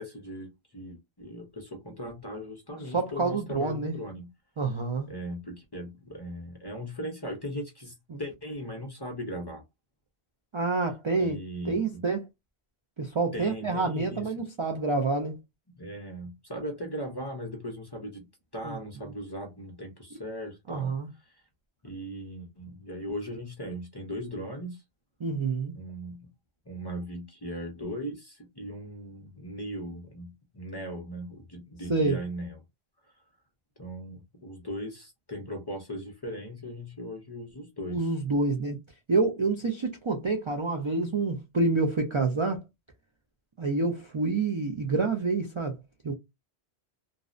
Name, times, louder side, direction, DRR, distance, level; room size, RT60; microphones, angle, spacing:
voice 1, 0.0-4.3 5.1-9.6 11.2-12.0 13.3-14.4 15.8-18.3 18.5-20.9 21.8-24.8 25.7-26.3 26.7-32.6 33.8-38.0, equal, 30° left, 0.5 m, -38 dB
voice 2, 2.9-3.9 4.6-5.1 8.1-8.2 10.5-11.4 11.7-12.2 13.0-15.3 18.6-18.8 20.7-21.1 25.2-25.7 31.9-32.2 37.9-38.8 39.1-42.6 43.6-45.8 46.0-46.1, right 3 dB, 50° right, 0.3 m, -27 dB
2.7 x 2.0 x 2.4 m
omnidirectional pair, 1.1 m